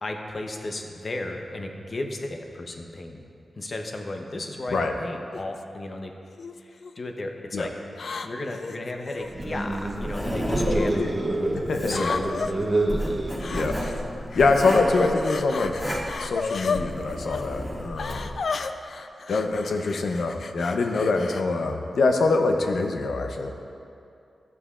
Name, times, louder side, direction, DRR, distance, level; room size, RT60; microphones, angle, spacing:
voice 1, 0.0-3.2 3.6-6.1 6.6-7.7 8.2-11.0 11.7-12.7, left 2 dB, 40° left, 3 dB, 0.7 m, -34 dB
sound 1, 5.3-5.6 6.4-6.9 7.9-9.3 10.3-10.9 11.9-12.5 13.4-14.0 14.3-16.8 17.2-17.4 18.0-21.4, left 4 dB, 60° left, 0.3 m, -33 dB
sound 2, 9.2-14.3, right 2 dB, 30° right, 0.8 m, -29 dB
Writing, 9.4-18.3, equal, 5° left, 1.9 m, -32 dB
voice 2, 11.7-12.2 13.5-13.7 14.4-15.7 16.2-18.3 19.3-23.5, left 3 dB, 80° left, 4 dB, 0.7 m, -24 dB
13.0 x 8.4 x 2.4 m, 2.6 s
wide cardioid pair, 140°, 0 cm